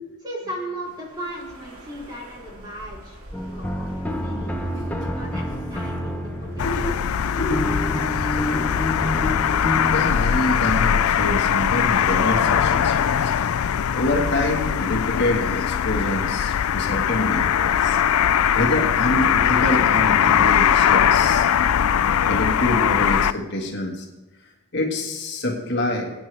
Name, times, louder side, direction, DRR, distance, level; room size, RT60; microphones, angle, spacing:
voice 1, 0.2-3.2 3.5-4.7 5.1-7.7, right 1 dB, 20° right, -4 dB, 3.5 m, -37 dB
sound 1, 0.8-13.4, right 1 dB, 85° right, 2.3 m, -46 dB
sound 2, 3.3-10.0, left 1 dB, 5° left, 0.8 m, -28 dB
voice 2, 6.5-6.9 7.3-7.7 8.5-9.1 9.9-18.0 18.5-21.5 22.2-24.1 24.7-26.1, left 1 dB, 50° left, 1 dB, 1.6 m, -26 dB
sound 3, 6.6-23.3, left 8 dB, 75° left, 0.4 m, -20 dB
22.0 x 9.4 x 3.4 m, 1.1 s
head